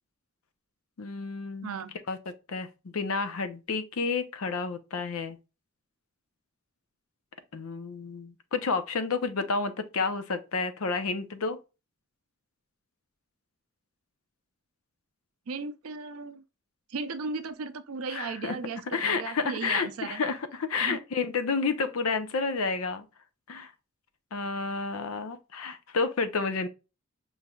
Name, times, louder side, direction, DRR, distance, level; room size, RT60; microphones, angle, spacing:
voice 1, 1.0-1.8 2.1-2.2 2.5-5.4 7.5-11.6 18.1-18.5 18.9-23.0 23.5-23.7 24.3-26.7, left 4 dB, 85° left, 0.6 m, -30 dB
voice 2, 1.6-2.0 15.5-16.4 16.9-20.2 20.8-21.0, right 4 dB, 90° right, 0.5 m, -36 dB
5.2 x 3.2 x 2.3 m
head